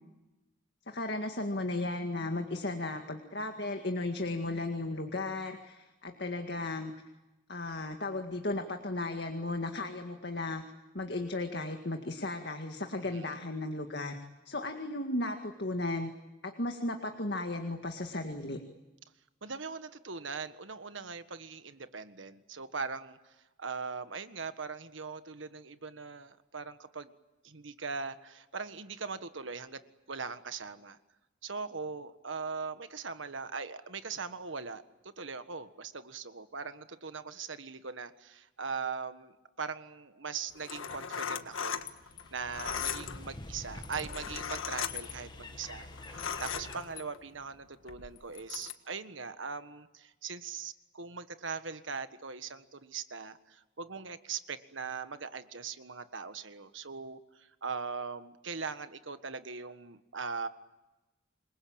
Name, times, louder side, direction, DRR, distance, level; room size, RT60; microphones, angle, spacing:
voice 1, 0.9-6.9 7.5-10.6 10.9-14.2 14.5-16.1 16.4-18.6, left 2 dB, 55° left, 5 dB, 2.0 m, -35 dB
voice 2, 13.0-13.4 19.4-27.1 27.4-31.0 31.4-41.8 42.3-60.5, right 5 dB, 75° right, 10 dB, 1.6 m, -40 dB
sound 1, 40.5-47.3 47.9-48.7, left 7 dB, 90° left, 1.6 m, -38 dB
sound 2, 41.8-46.8, left 1 dB, 20° left, 1.6 m, -47 dB
27.5 x 22.0 x 8.9 m, 1.0 s
head